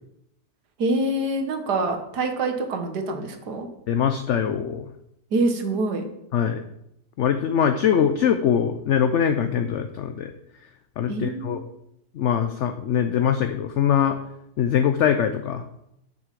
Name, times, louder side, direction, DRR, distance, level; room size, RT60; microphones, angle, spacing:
voice 1, 0.8-3.7 5.3-6.1 11.1-11.6, right 2 dB, 80° right, 5 dB, 1.9 m, -25 dB
voice 2, 3.9-4.8 6.3-6.6 7.2-10.3 11.0-11.6 12.2-14.2 14.6-15.6, left 8 dB, 65° left, 8 dB, 0.7 m, -22 dB
7.3 x 6.4 x 7.4 m, 0.80 s
omnidirectional pair, 1.7 m